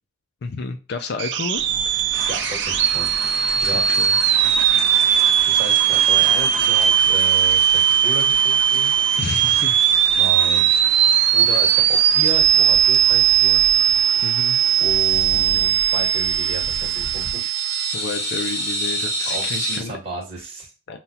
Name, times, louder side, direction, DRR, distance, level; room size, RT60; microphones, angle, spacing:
voice 1, 0.4-1.6 3.7-4.1 9.2-9.8 14.2-14.6 17.9-20.0 20.9-21.0, left 4 dB, 55° left, 6 dB, 0.4 m, -30 dB
sound 1, 1.2-17.9, right 10 dB, 60° right, 0.4 m, -18 dB
sound 2, 1.5-17.3, equal, 5° right, 1.0 m, -40 dB
voice 2, 1.8-3.1 3.6-4.5 5.5-8.9 10.1-10.7 11.3-13.6 14.8-17.5 19.2-20.7, right 1 dB, 30° right, 0 dB, 1.6 m, -33 dB
sound 3, 2.1-19.8, equal, 15° left, 1.3 m, -32 dB
5.6 x 2.3 x 2.7 m, 0.34 s
head